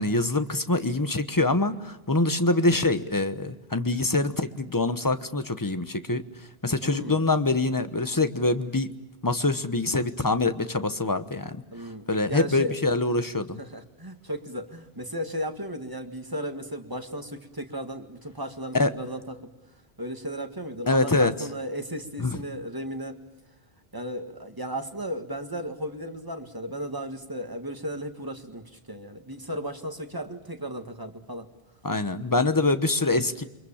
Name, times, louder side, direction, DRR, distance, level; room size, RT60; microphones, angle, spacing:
voice 1, 0.0-6.2 6.6-8.9 9.2-11.6 12.1-13.6 18.7-18.9 20.9-21.3 22.2-22.4 31.8-33.4, left 2 dB, 20° left, 10 dB, 1.1 m, -24 dB
voice 2, 6.8-7.2 11.7-12.8 13.6-19.5 20.0-23.2 23.9-31.5, equal, 20° right, 5 dB, 1.9 m, -35 dB
28.5 x 24.5 x 7.3 m, 1.0 s
omnidirectional pair, 1.0 m